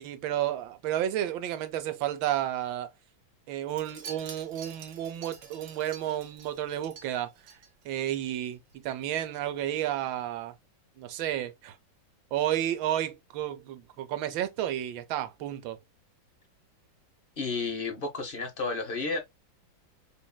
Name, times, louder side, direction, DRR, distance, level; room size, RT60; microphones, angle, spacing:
voice 1, 0.0-2.9 3.5-7.3 7.8-10.5 11.0-11.8 12.3-15.8, right 12 dB, 80° right, 1.4 m, -31 dB
Wind chime, 3.7-8.2 8.5-8.8 9.0-9.1, right 5 dB, 65° right, 1.5 m, -48 dB
voice 2, 17.4-19.2, left 3 dB, 40° left, 0.8 m, -32 dB
5.3 x 2.6 x 2.2 m
omnidirectional pair, 2.1 m